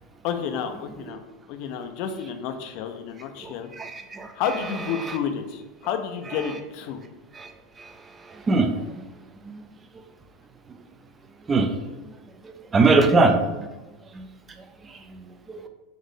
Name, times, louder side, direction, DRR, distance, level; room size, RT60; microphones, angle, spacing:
voice 1, 0.2-1.2 1.5-3.7 4.3-7.0, left 7 dB, 55° left, 7 dB, 0.4 m, -30 dB
voice 2, 3.4-4.3 7.4-7.5 7.8-7.9 8.3-8.8 9.4-9.6 11.5-11.7 12.4-13.7 14.1-14.2 15.5-15.7, right 3 dB, 25° right, 6 dB, 0.4 m, -22 dB
3.9 x 2.5 x 3.6 m, 1.1 s
hypercardioid pair, 85°, 0 cm